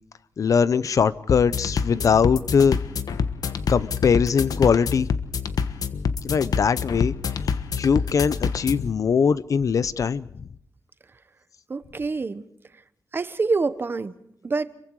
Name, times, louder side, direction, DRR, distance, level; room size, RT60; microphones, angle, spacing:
voice 1, 0.4-2.8 3.7-5.1 6.2-7.1 7.8-10.4, left 6 dB, 60° left, 0.7 m, -21 dB
sound 1, 1.3-8.9, left 6 dB, 85° left, 1.3 m, -27 dB
voice 2, 11.7-12.4 13.1-14.1 14.4-14.7, right 4 dB, 35° right, 1.1 m, -26 dB
28.0 x 23.0 x 4.8 m
wide cardioid pair, 140°, 6 cm